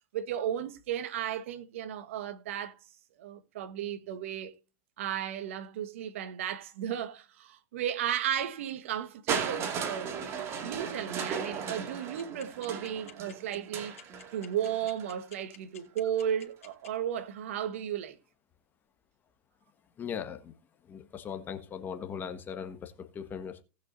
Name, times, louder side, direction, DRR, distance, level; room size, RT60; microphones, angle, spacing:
voice 1, 0.1-2.7 3.2-4.5 5.0-10.1 10.6-14.0 14.3-18.2, right 10 dB, 70° right, 1.5 m, -34 dB
Crushing, 9.3-15.2 16.1-16.2, right 6 dB, 35° right, 2.3 m, -36 dB
sound 1, 12.2-16.9, left 9 dB, 80° left, 2.6 m, -50 dB
voice 2, 20.0-20.5 20.8-23.6, left 7 dB, 25° left, 1.5 m, -39 dB
18.5 x 6.2 x 2.7 m
hypercardioid pair, 110°, 7 cm